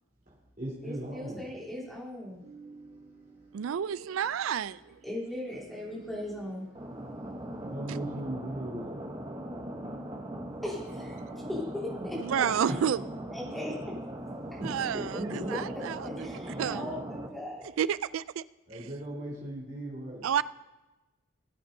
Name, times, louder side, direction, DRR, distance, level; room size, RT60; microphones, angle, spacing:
voice 1, 0.3-1.4 2.4-3.8 5.0-5.1 5.5-9.9 12.7-12.8 14.6-17.0 18.7-20.3, right 1 dB, 40° right, 3.6 m, -40 dB
voice 2, 0.8-2.4 5.0-6.6 10.6-11.1 11.5-12.7 13.3-13.8 16.0-17.7, left 1 dB, ahead, 3.4 m, -38 dB
voice 3, 3.5-5.0 11.2-11.4 12.2-13.0 14.6-17.1 17.8-18.4 20.2-20.4, right 8 dB, 85° right, 0.3 m, -31 dB
sound 1, 6.7-17.3, right 1 dB, 25° right, 0.9 m, -40 dB
20.0 x 8.6 x 2.7 m
head